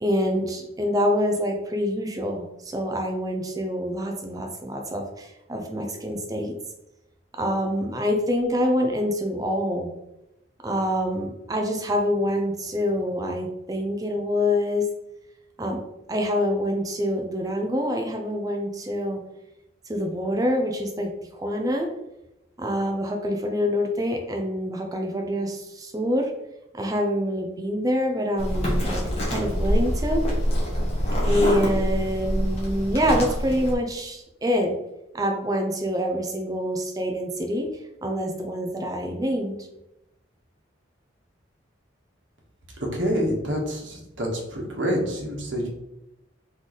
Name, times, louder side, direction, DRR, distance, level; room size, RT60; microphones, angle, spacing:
voice 1, 0.0-6.5 7.4-9.9 10.6-14.8 15.6-15.8 16.1-19.2 19.9-21.9 22.6-26.3 26.7-30.2 31.0-34.7 35.1-37.7 38.0-39.5, equal, 20° right, 2 dB, 0.4 m, -26 dB
sound 1, 28.4-33.7, equal, 30° left, 1.3 m, -25 dB
voice 2, 42.9-45.7, equal, 65° right, -1 dB, 1.3 m, -27 dB
3.7 x 3.2 x 4.0 m, 0.89 s
head